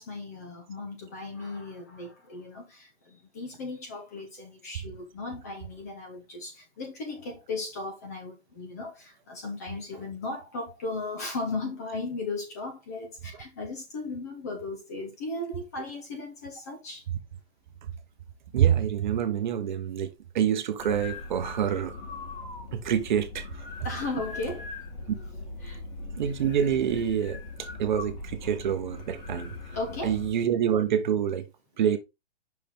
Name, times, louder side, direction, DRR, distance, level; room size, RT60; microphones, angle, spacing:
voice 1, 0.0-17.1 23.8-24.7 25.6-25.8 29.7-30.1, left 3 dB, 15° left, 0.5 m, -36 dB
voice 2, 18.5-21.9 22.7-23.5 26.2-27.4 27.8-29.5 30.0-31.4 31.8-32.0, right 9 dB, 45° right, 1.0 m, -26 dB
sound 1, 20.8-30.3, left 3 dB, 55° left, 3.5 m, -40 dB
5.8 x 4.8 x 3.5 m
hypercardioid pair, 165°, 33 cm